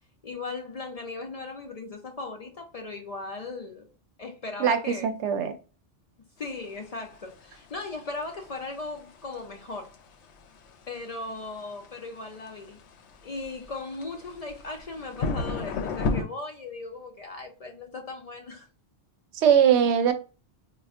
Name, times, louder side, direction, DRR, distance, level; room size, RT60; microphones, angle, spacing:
voice 1, 0.2-3.9 4.2-5.1 6.4-10.0 10.9-12.8 13.2-18.7, left 3 dB, 55° left, 0.4 m, -38 dB
voice 2, 4.6-5.5 19.3-20.1, right 8 dB, 80° right, 0.9 m, -21 dB
sound 1, 6.4-16.2, left 3 dB, 80° left, 0.9 m, -35 dB
4.2 x 2.3 x 2.4 m
omnidirectional pair, 1.1 m